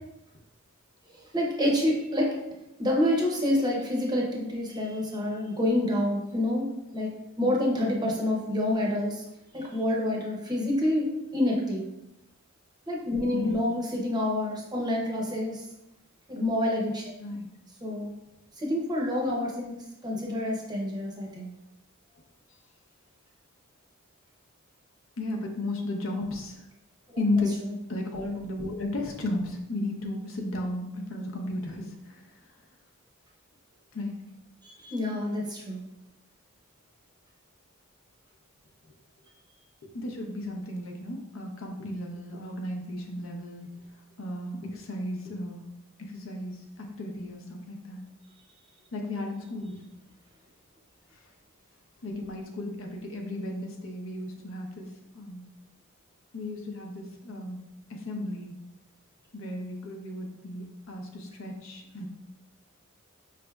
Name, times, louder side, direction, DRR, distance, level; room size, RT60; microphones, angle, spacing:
voice 1, 1.2-2.3 2.8-6.7 6.9-7.1 7.4-9.2 9.5-11.8 12.9-15.7 16.3-17.2 17.8-18.1 18.6-21.5 27.6-27.7 34.6-35.8, left 1 dB, 20° right, -2 dB, 0.6 m, -28 dB
voice 2, 25.2-26.6 27.2-27.6 27.9-32.2 33.9-34.2 38.8-38.9 39.9-43.7 44.2-45.6 46.0-48.0 48.9-49.8 52.0-55.4 56.3-57.6 57.9-58.5 59.3-62.0, left 1 dB, 70° left, 1 dB, 0.7 m, -34 dB
5.1 x 3.3 x 2.3 m, 0.89 s
head